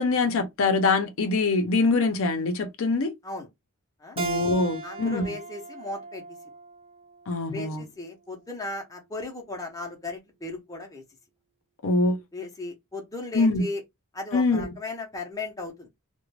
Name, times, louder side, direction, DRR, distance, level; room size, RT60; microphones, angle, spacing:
voice 1, 0.0-3.1 4.2-5.3 7.3-7.8 11.8-12.2 13.3-13.6 14.3-14.7, left 3 dB, 60° left, 0.6 m, -24 dB
Keyboard (musical), 4.2-7.4, right 4 dB, 25° right, 0.3 m, -36 dB
voice 2, 4.8-6.2 7.5-11.0 12.3-13.8 14.1-15.9, left 2 dB, 15° left, 0.6 m, -36 dB
2.4 x 2.1 x 3.1 m
head